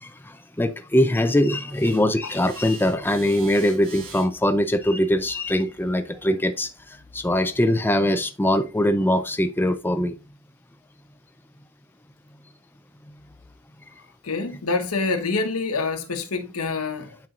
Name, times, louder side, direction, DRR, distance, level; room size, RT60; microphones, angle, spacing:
voice 1, 0.0-10.1, left 1 dB, 10° left, 0.5 m, -22 dB
sound 1, 1.6-6.8, right 5 dB, 65° right, 4.5 m, -46 dB
voice 2, 14.2-17.2, left 3 dB, 90° left, 1.1 m, -26 dB
10.5 x 4.5 x 2.5 m
head